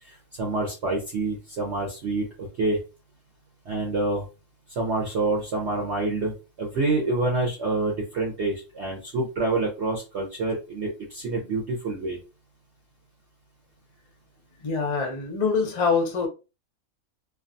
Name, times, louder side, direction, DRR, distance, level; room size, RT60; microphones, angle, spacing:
voice 1, 0.0-2.8 3.7-4.2 4.8-6.3 6.6-12.2, right 2 dB, 55° right, 0.8 m, -27 dB
voice 2, 14.6-16.3, left 5 dB, 50° left, 0.4 m, -24 dB
2.5 x 2.3 x 2.5 m
omnidirectional pair, 1.6 m